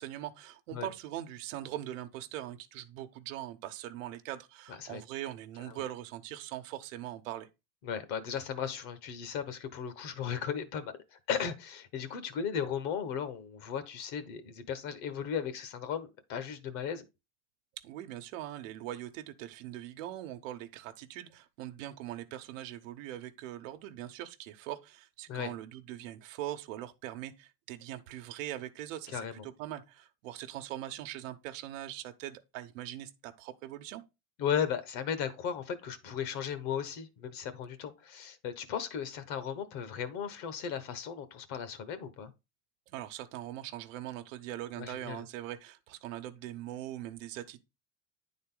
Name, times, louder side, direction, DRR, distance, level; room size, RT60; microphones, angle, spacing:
voice 1, 0.0-7.5 17.8-34.0 42.9-47.6, right 13 dB, 90° right, 0.9 m, -41 dB
voice 2, 7.8-17.0 25.3-25.5 29.1-29.3 34.4-42.3 44.8-45.2, left 8 dB, 55° left, 1.1 m, -36 dB
9.6 x 3.9 x 3.8 m
cardioid pair, 170°, 38 cm